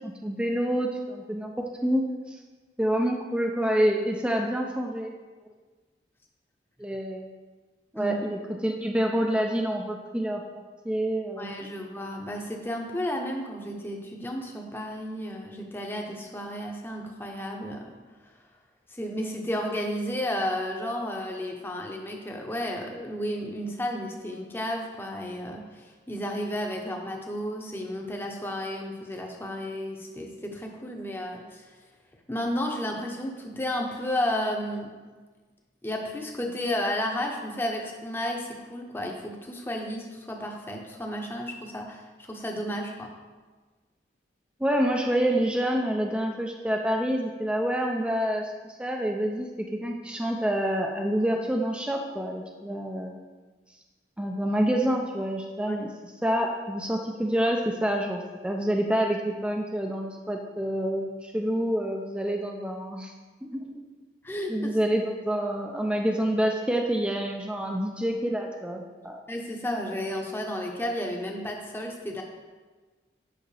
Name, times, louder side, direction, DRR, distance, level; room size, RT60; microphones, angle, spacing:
voice 1, 0.0-1.5 1.8-2.4 2.8-5.1 6.8-7.2 7.9-11.7 44.6-48.5 48.8-53.2 54.2-55.9 56.2-63.1 63.5-63.8 64.5-69.2, equal, 5° right, 1 dB, 0.4 m, -27 dB
voice 2, 11.4-17.8 18.9-31.6 32.3-34.9 35.8-43.1 55.7-55.8 64.2-64.5 69.3-72.2, left 1 dB, 10° left, 1 dB, 0.8 m, -32 dB
8.9 x 5.7 x 3.3 m, 1.3 s
head